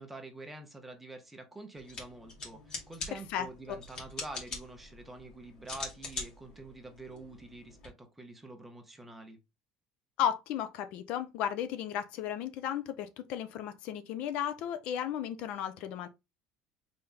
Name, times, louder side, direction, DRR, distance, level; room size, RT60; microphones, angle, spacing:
voice 1, 0.0-9.4, right 2 dB, 10° right, 1.0 m, -47 dB
sound 1, 1.8-7.9, left 4 dB, 35° left, 2.3 m, -44 dB
voice 2, 3.1-3.5 10.2-16.1, left 9 dB, 60° left, 0.6 m, -34 dB
4.1 x 3.4 x 3.7 m
cardioid pair, 145°, 2 cm